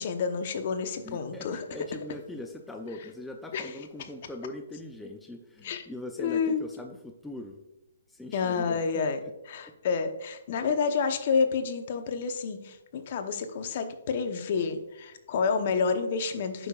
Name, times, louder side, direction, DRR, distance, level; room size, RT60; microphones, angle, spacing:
voice 1, 0.0-1.6 3.5-3.7 5.6-5.8 6.2-6.6 8.3-9.2 9.5-16.7, left 5 dB, 45° left, 8 dB, 0.9 m, -29 dB
voice 2, 1.0-7.6 8.1-9.3, left 1 dB, 5° left, 3 dB, 0.5 m, -41 dB
8.9 x 6.5 x 2.4 m, 0.95 s
hypercardioid pair, 150°, 0 cm